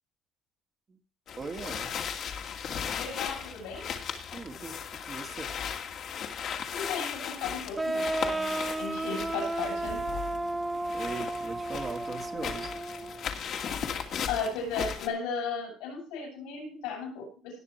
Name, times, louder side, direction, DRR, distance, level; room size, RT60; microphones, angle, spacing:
sound 1, 1.3-15.1, left 7 dB, 60° left, 2.4 m, -37 dB
voice 1, 1.4-1.9 4.3-5.5 10.9-12.7, right 4 dB, 35° right, 4 dB, 2.4 m, -39 dB
voice 2, 3.0-3.9 6.7-10.1 14.3-17.6, left 5 dB, 90° left, 2 dB, 7.0 m, -35 dB
sound 2, 7.8-13.3, right 2 dB, 15° right, 0.8 m, -33 dB
19.0 x 6.9 x 4.6 m, 0.40 s
supercardioid pair, 90°, 0 cm